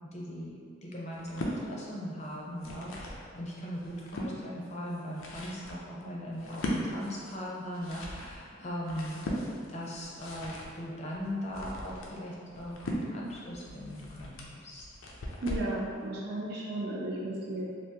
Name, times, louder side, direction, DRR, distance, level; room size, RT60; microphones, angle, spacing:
voice 1, 0.0-9.2 9.6-14.8, equal, 35° left, -4 dB, 0.5 m, -39 dB
sound 1, 1.1-1.6 2.4-3.2 3.7-4.3 4.9-15.8, equal, 85° left, 0.5 m, -39 dB
voice 2, 15.4-17.7, right 1 dB, 50° right, -4 dB, 0.5 m, -34 dB
3.4 x 2.5 x 2.8 m, 2.1 s
head